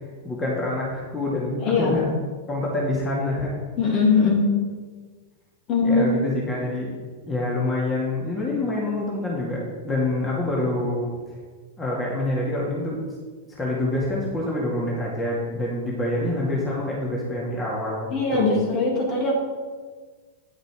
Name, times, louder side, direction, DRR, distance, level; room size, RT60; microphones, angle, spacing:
voice 1, 0.2-2.1 2.5-3.5 5.8-6.9 7.3-11.1 11.8-13.0 13.6-18.5, left 1 dB, 20° left, -5 dB, 2.4 m, -26 dB
voice 2, 1.6-2.0 3.8-4.6 5.7-6.2 18.1-19.3, left 4 dB, 40° left, -2 dB, 2.9 m, -21 dB
9.5 x 6.6 x 4.7 m, 1.5 s
hypercardioid pair, 100°, 0 cm